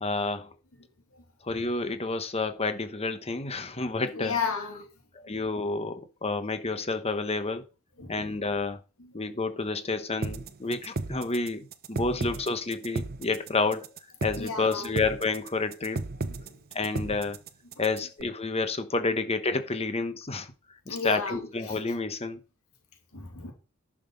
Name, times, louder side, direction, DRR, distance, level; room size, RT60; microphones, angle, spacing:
voice 1, 0.0-0.5 1.4-4.4 5.1-7.7 8.1-8.8 9.1-13.9 14.2-16.1 16.7-17.4 17.8-20.5 20.9-22.4, left 3 dB, 30° left, 1.2 m, -29 dB
voice 2, 4.1-4.9 8.0-8.3 9.0-9.1 14.4-14.9 20.9-21.8 23.1-23.5, left 5 dB, 70° left, 2.6 m, -33 dB
sound 1, 10.2-18.2, right 3 dB, 45° right, 0.7 m, -34 dB
11.0 x 6.1 x 5.2 m
head